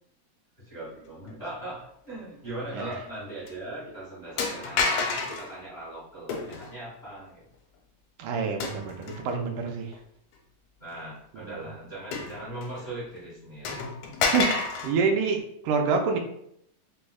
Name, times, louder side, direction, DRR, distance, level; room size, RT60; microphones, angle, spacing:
voice 1, 0.6-7.4 10.8-13.8, right 1 dB, 60° left, -9 dB, 0.6 m, -39 dB
sound 1, 2.9-3.2 3.5-3.6 4.4-5.5 6.3-6.8 8.6-9.4 9.9-10.0 12.1-12.9 13.2-13.3 13.7-15.0, left 4 dB, 80° left, 2.0 m, -29 dB
voice 2, 8.2-10.0 11.3-11.6 14.3-14.5 14.8-16.2, right 5 dB, 90° right, 3 dB, 2.1 m, -27 dB
5.2 x 2.0 x 2.3 m, 0.71 s
omnidirectional pair, 3.5 m